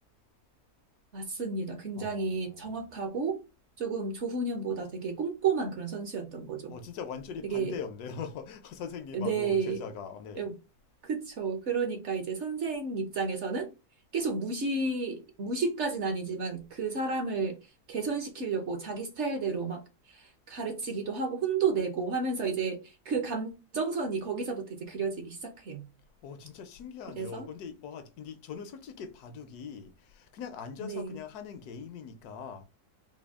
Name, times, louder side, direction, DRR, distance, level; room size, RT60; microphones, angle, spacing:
voice 1, 1.1-3.4 3.8-6.7 7.4-7.7 9.1-9.8 10.4-10.5 11.0-13.7 14.1-17.6 17.9-19.8 20.1-25.8 27.1-27.5 30.8-31.2, right 4 dB, 55° right, 0.8 m, -32 dB
voice 2, 2.0-2.8 6.7-10.4 26.2-32.7, left 6 dB, 75° left, 1.1 m, -41 dB
4.2 x 2.2 x 3.4 m
omnidirectional pair, 1.7 m